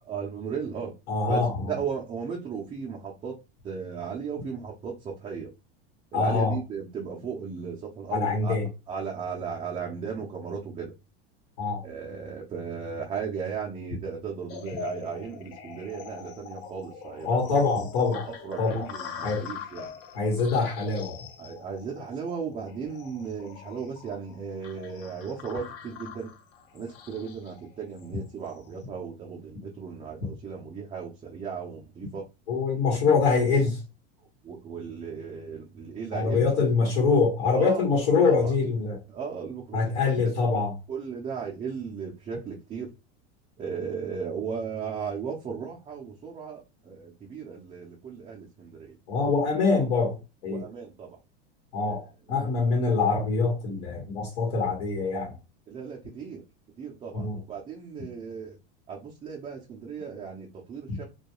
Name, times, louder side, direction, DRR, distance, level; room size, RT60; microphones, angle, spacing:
voice 1, 0.1-0.9 1.3-3.4 3.6-5.5 6.1-8.6 8.9-10.9 11.8-17.6 18.3-20.0 21.4-26.3 26.7-32.3 34.4-36.5 37.5-37.9 38.2-38.5 39.1-39.9 40.6-42.9 43.6-49.0 50.5-51.2 51.8-51.9 52.3-52.5 55.7-56.4 56.8-58.6 58.9-61.1, right 6 dB, 20° right, 0.4 m, -36 dB
voice 2, 1.1-1.6 6.1-6.6 8.1-8.7 11.6-11.8 17.2-18.3 18.6-18.9 19.2-19.4 20.1-21.2 32.5-33.8 36.1-39.0 39.7-40.7 49.1-50.2 50.4-50.6 51.7-55.3 57.1-57.4, left 4 dB, 80° left, 1.1 m, -24 dB
sound 1, 14.5-28.7, left 7 dB, 45° left, 0.5 m, -44 dB
2.3 x 2.2 x 2.9 m
supercardioid pair, 130°, 31 cm